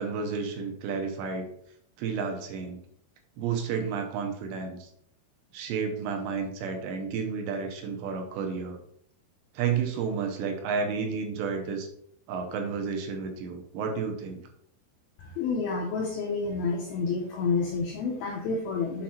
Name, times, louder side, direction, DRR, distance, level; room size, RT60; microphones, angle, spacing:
voice 1, 0.0-1.4 2.0-2.8 3.4-4.9 5.5-8.8 9.5-11.9 12.3-14.4, right 5 dB, 75° right, 4 dB, 3.0 m, -31 dB
voice 2, 15.4-19.0, left 4 dB, 80° left, 0 dB, 2.2 m, -29 dB
7.4 x 4.1 x 4.3 m, 0.69 s
omnidirectional pair, 5.4 m